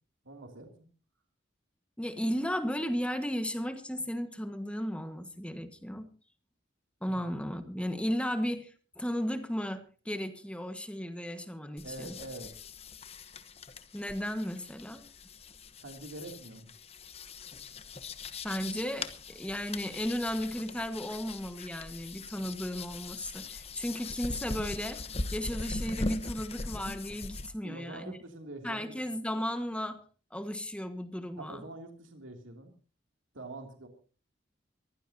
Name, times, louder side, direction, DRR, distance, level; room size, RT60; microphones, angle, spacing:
voice 1, 0.2-0.7 7.1-7.2 11.8-12.5 15.8-16.7 27.6-29.0 31.4-32.7 33.3-33.9, right 2 dB, 85° right, 3 dB, 2.9 m, -45 dB
voice 2, 2.0-6.1 7.0-12.1 13.9-15.0 18.4-28.2 28.6-30.0 30.3-31.6, equal, 5° left, 8 dB, 1.5 m, -35 dB
sound 1, 11.8-27.5, left 2 dB, 30° left, 1.0 m, -40 dB
23.0 x 15.5 x 2.8 m, 0.38 s
head